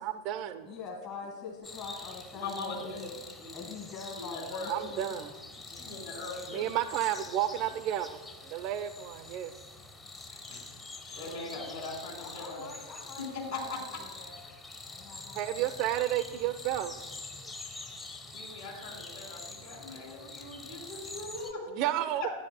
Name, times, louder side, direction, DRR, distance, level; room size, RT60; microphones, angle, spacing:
voice 1, 0.0-0.7 4.7-5.3 6.5-9.5 15.3-16.9 21.7-22.3, right 12 dB, 40° right, 11 dB, 0.4 m, -32 dB
voice 2, 0.6-3.1 3.5-6.0 11.3-11.8 12.2-13.4 13.6-14.4 14.9-15.9 16.2-16.5, left 5 dB, 30° left, 0 dB, 1.6 m, -45 dB
sound 1, 1.6-21.5, left 3 dB, 15° left, 0.8 m, -46 dB
voice 3, 2.3-3.0 3.3-3.7 4.2-4.7 5.7-6.7 10.3-10.6 11.1-12.7 13.3-14.0 18.3-21.6 22.2-22.3, left 3 dB, 55° left, -1 dB, 3.2 m, -40 dB
13.5 x 9.6 x 2.2 m, 1.2 s
figure-of-eight pair, 90°, 0 cm